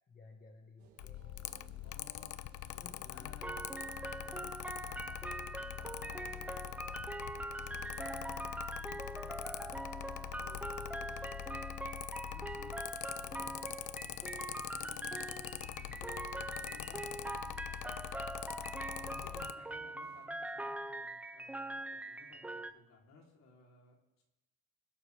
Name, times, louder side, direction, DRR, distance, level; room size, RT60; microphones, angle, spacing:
voice 1, 0.1-1.4 2.8-3.4 8.8-9.1 13.4-13.7 19.3-19.7, left 3 dB, 30° left, 2 dB, 1.4 m, -57 dB
sound 1, 0.8-20.3, right 8 dB, 70° right, 1.9 m, -63 dB
Mechanical fan, 1.0-19.5, left 15 dB, 80° left, 0.6 m, -44 dB
voice 2, 1.8-3.8 4.2-13.7 13.9-18.3 19.0-24.2, left 3 dB, 65° left, -1 dB, 3.5 m, -61 dB
sound 2, 3.4-22.7, right 1 dB, 5° right, 0.4 m, -42 dB
26.5 x 11.5 x 3.4 m, 0.98 s
cardioid pair, 165°, 30 cm